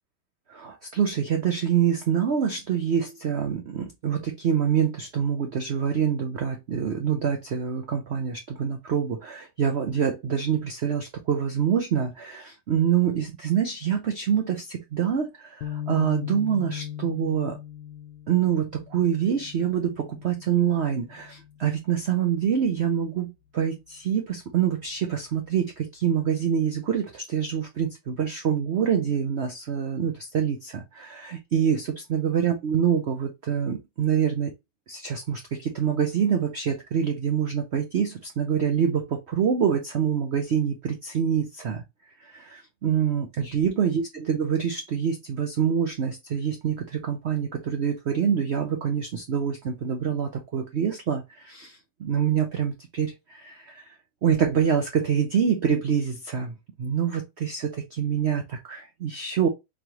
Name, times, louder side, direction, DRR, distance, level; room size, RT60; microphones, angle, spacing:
voice 1, 0.5-17.6 18.3-34.5 34.9-41.8 42.2-53.8 54.2-59.5, right 8 dB, 75° right, 0.6 m, -26 dB
sound 1, 15.6-22.0, left 10 dB, 85° left, 1.3 m, -38 dB
4.0 x 3.2 x 2.8 m
omnidirectional pair, 1.9 m